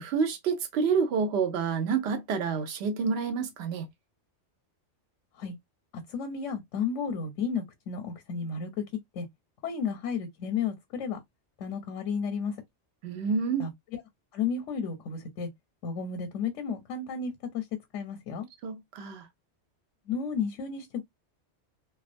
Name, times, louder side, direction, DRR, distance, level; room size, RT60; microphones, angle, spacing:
voice 1, 0.0-3.9 13.0-13.7 18.6-19.3, right 5 dB, 65° right, 0.8 m, -28 dB
voice 2, 6.1-8.8 9.1-9.3 9.6-11.2 11.6-12.6 13.6-13.7 14.3-15.5 15.8-17.6 17.9-18.5 20.1-21.0, left 6 dB, 90° left, 0.9 m, -32 dB
2.3 x 2.2 x 2.5 m
omnidirectional pair, 1.2 m